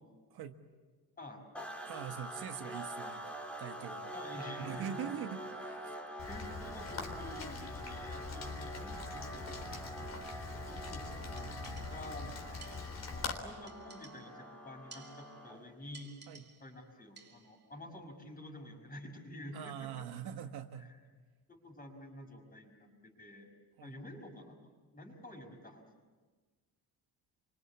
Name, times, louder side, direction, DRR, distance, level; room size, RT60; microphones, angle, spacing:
sound 1, 1.5-15.7, right 1 dB, 5° left, 3.0 m, -46 dB
voice 1, 1.9-4.1 4.6-6.0 11.1-12.3 16.3-16.5 19.5-21.0 23.8-24.0, right 9 dB, 80° right, 6 dB, 1.7 m, -44 dB
voice 2, 4.1-5.0 6.3-12.3 13.1-16.1 16.6-19.9 21.5-23.5 23.8-24.6 24.9-25.8, left 1 dB, 25° left, 2 dB, 5.5 m, -49 dB
Rain, 6.2-13.4, left 4 dB, 45° left, 3.7 m, -43 dB
sound 2, 11.4-12.2 12.6-13.2 13.7-14.5 14.9-15.6 15.9-16.8 17.2-17.7, right 5 dB, 25° right, 2.7 m, -57 dB
27.0 x 25.0 x 8.6 m, 1.4 s
cardioid pair, 160°, 37 cm